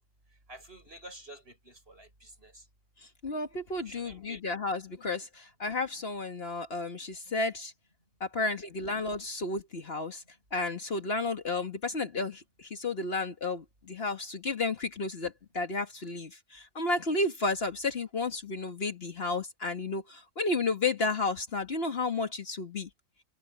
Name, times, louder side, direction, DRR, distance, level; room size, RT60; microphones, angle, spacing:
voice 1, 0.5-2.6 3.8-4.6, right 1 dB, 50° right, 8.2 m, -50 dB
voice 2, 3.2-7.7 8.2-10.2 10.5-22.9, left 3 dB, 50° left, 1.9 m, -32 dB
open air
omnidirectional pair, 1.3 m